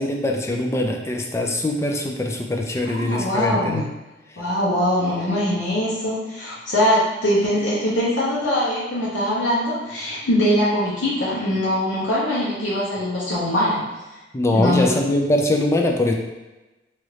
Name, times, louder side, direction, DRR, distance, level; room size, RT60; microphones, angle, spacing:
voice 1, 0.0-3.8 14.3-16.1, left 1 dB, 15° left, 1 dB, 0.3 m, -22 dB
voice 2, 2.8-3.8 4.4-13.8 14.5-15.0, left 1 dB, 85° left, -7 dB, 0.8 m, -22 dB
3.0 x 2.5 x 3.1 m, 1.1 s
head